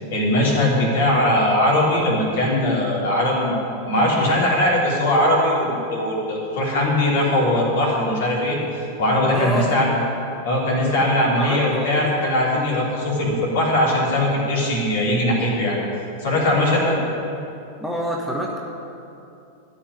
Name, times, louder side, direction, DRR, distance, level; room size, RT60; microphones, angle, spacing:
voice 1, 0.1-3.6 3.9-8.6 9.0-9.9 10.4-15.8 16.2-16.9, left 1 dB, 55° left, -4 dB, 3.5 m, -20 dB
voice 2, 9.3-9.9 11.4-12.1 16.7-17.1 17.8-18.6, equal, 5° left, -2 dB, 1.3 m, -28 dB
13.5 x 5.8 x 9.7 m, 2.7 s
figure-of-eight pair, 90°, 0 cm